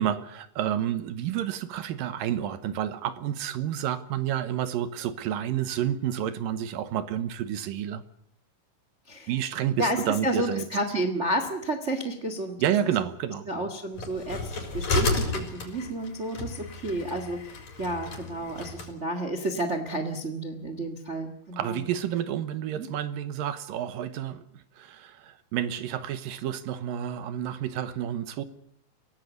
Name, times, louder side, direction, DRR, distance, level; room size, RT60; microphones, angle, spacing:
voice 1, 0.0-8.0 9.3-10.6 12.6-13.7 21.5-28.4, right 10 dB, 70° right, 2.6 m, -30 dB
voice 2, 9.8-12.6 13.5-21.8 22.7-22.9, right 1 dB, 85° right, 0.6 m, -31 dB
sound 1, 14.0-18.9, left 2 dB, 50° left, 5.5 m, -32 dB
23.5 x 17.5 x 8.2 m
omnidirectional pair, 4.5 m